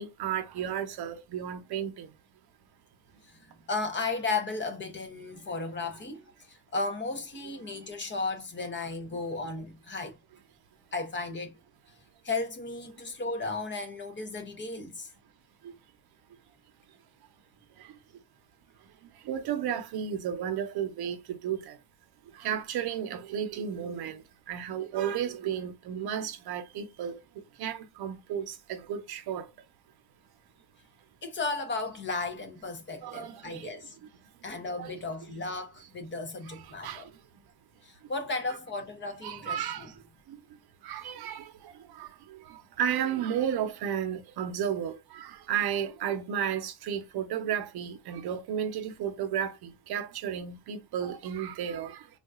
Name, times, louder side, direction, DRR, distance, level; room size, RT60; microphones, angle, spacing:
voice 1, 0.0-2.1 15.6-15.7 19.3-21.8 22.4-24.2 24.5-27.2 27.6-29.5 33.0-33.8 34.8-34.9 36.5-37.0 38.5-38.6 39.2-39.9 40.3-40.4 40.8-52.0, right 9 dB, 65° right, 0.7 m, -33 dB
voice 2, 3.7-6.2 6.5-10.2 10.9-11.6 12.2-15.1 31.2-34.0 34.4-37.1 37.8-39.9, left 3 dB, 30° left, 0.7 m, -34 dB
3.7 x 2.4 x 2.3 m
cardioid pair, 130°, 41 cm